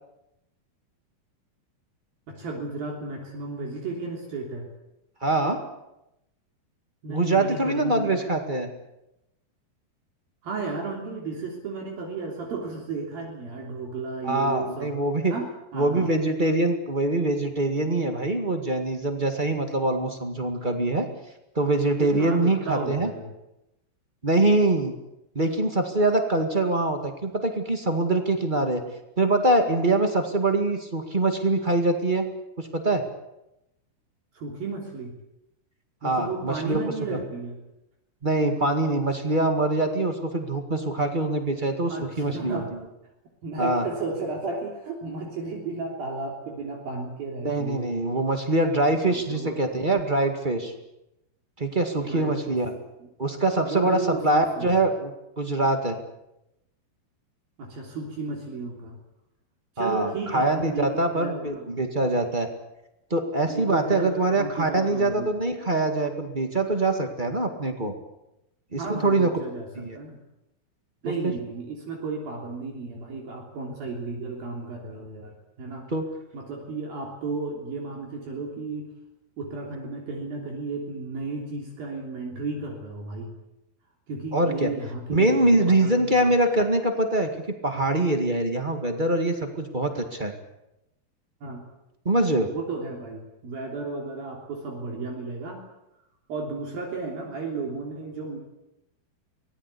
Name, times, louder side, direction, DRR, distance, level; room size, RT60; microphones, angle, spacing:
voice 1, 2.3-4.7 7.0-8.2 10.4-14.9 15.3-15.5 15.7-16.1 22.0-23.3 34.3-35.1 36.0-37.6 41.9-42.7 43.4-48.1 49.0-49.8 52.1-52.6 53.6-54.8 57.6-59.0 59.8-61.6 63.5-65.3 68.8-70.2 71.0-75.9 76.3-78.9 79.4-83.3 84.1-86.3 91.4-91.7 92.5-95.6 96.3-98.4, right 3 dB, 65° right, 0 dB, 5.1 m, -33 dB
voice 2, 5.2-5.6 7.1-8.7 14.2-15.3 15.7-21.1 21.5-23.1 24.2-24.9 25.3-28.8 29.2-32.2 32.6-33.0 36.0-36.8 37.1-37.2 38.2-42.6 43.6-43.8 47.4-50.7 51.6-52.7 53.2-56.0 59.8-62.5 63.1-67.9 68.7-69.4 69.8-70.0 71.2-71.3 75.9-76.0 84.3-84.7 85.1-87.3 87.6-90.3 92.0-92.5, right 2 dB, 40° right, 5 dB, 0.7 m, -24 dB
25.0 x 19.0 x 8.4 m, 0.89 s
omnidirectional pair, 4.6 m